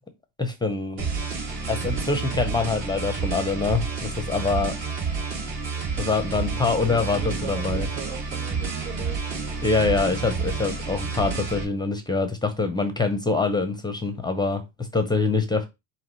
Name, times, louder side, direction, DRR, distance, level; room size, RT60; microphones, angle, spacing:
voice 1, 0.4-1.1 1.7-4.8 6.0-7.9 9.6-14.6 14.9-15.7, left 4 dB, 10° left, 0.6 m, -25 dB
sound 1, 1.0-11.6, right 5 dB, 50° right, 2.5 m, -29 dB
voice 2, 6.8-9.2, right 7 dB, 80° right, 1.2 m, -39 dB
4.9 x 3.0 x 3.0 m
supercardioid pair, 110°, 48 cm